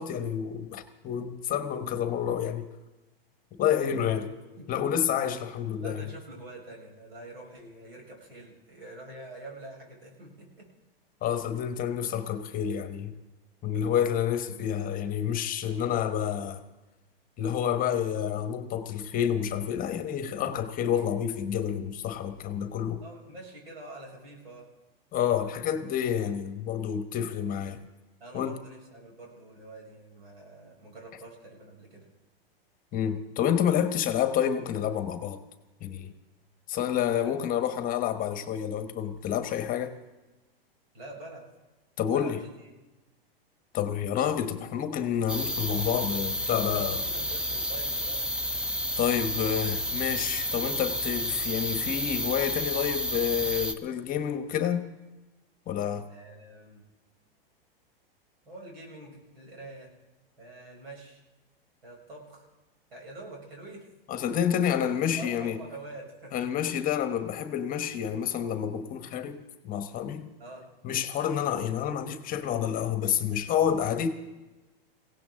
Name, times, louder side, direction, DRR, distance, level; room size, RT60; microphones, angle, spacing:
voice 1, 0.0-2.7 3.6-4.3 4.7-6.0 11.2-13.1 13.6-16.6 17.4-23.0 25.1-27.8 28.3-28.6 32.9-35.4 35.8-36.1 36.7-40.0 42.0-42.4 43.7-47.0 49.0-54.9 55.7-56.0 64.1-65.6 66.3-70.3 70.8-74.1, left 9 dB, 30° left, 1.1 m, -29 dB
voice 2, 3.8-4.9 5.8-10.7 23.0-24.7 28.2-32.1 37.1-37.4 40.9-41.5 42.1-42.7 46.7-48.2 56.1-56.8 58.5-59.9 60.4-61.2 61.8-62.5 62.9-63.9 64.3-64.4 65.2-66.5 70.4-70.6, right 2 dB, 85° right, 7.1 m, -46 dB
sound 1, 45.3-53.7, equal, 5° right, 0.7 m, -31 dB
22.5 x 17.0 x 3.8 m
hypercardioid pair, 130°, 30 cm